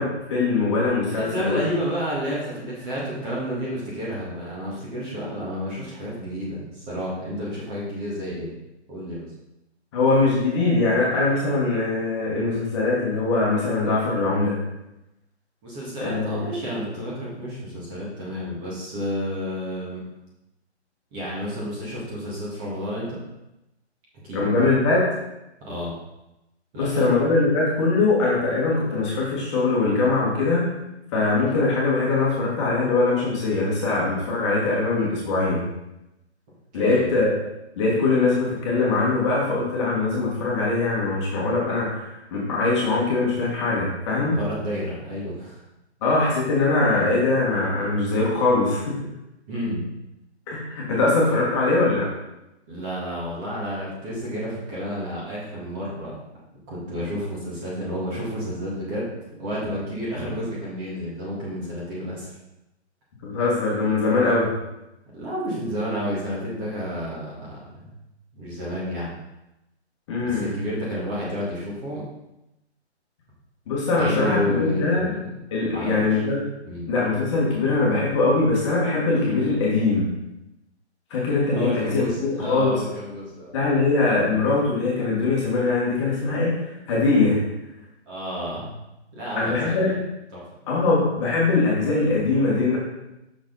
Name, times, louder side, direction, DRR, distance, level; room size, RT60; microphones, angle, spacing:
voice 1, 0.0-1.6 9.9-14.5 16.0-16.4 24.3-25.0 26.8-30.7 31.1-35.6 36.7-37.3 37.8-44.4 46.0-48.9 50.5-52.1 63.2-64.5 70.1-70.5 73.7-75.1 75.5-76.4 76.9-80.1 81.1-82.8 83.5-86.5 86.9-87.4 89.4-90.0 90.7-92.8, left 3 dB, 25° left, -5 dB, 1.7 m, -22 dB
voice 2, 1.1-8.5 8.9-9.3 15.6-20.0 21.1-23.2 24.2-24.4 25.6-25.9 26.7-27.1 36.7-37.2 44.3-45.6 49.5-49.8 52.7-56.1 56.7-59.1 59.4-62.3 65.1-68.0 68.3-69.1 70.2-72.0 74.0-75.3 75.7-76.2 76.7-76.9 81.6-83.8 88.1-88.7 89.1-90.0 90.3-90.4, equal, 20° right, -6 dB, 1.7 m, -30 dB
6.3 x 6.1 x 3.9 m, 0.92 s
hypercardioid pair, 160°, 35 cm